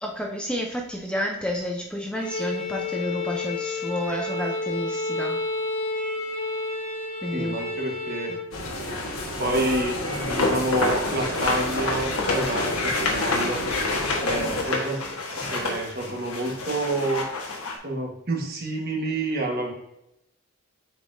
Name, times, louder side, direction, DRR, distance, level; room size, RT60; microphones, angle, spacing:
voice 1, 0.0-5.4 7.2-7.6 8.3-8.4, equal, 5° left, 0 dB, 0.6 m, -30 dB
Bowed string instrument, 2.1-8.5, left 3 dB, 30° left, 1.7 m, -30 dB
voice 2, 7.3-8.4 9.4-13.6 14.2-15.0 15.3-17.2 17.8-19.7, right 2 dB, 45° right, 0 dB, 1.4 m, -28 dB
sound 1, 8.5-14.6, left 1 dB, 70° left, 1.4 m, -32 dB
sound 2, 10.2-17.7, left 2 dB, 90° left, 1.5 m, -28 dB
7.8 x 5.4 x 2.7 m, 0.84 s
head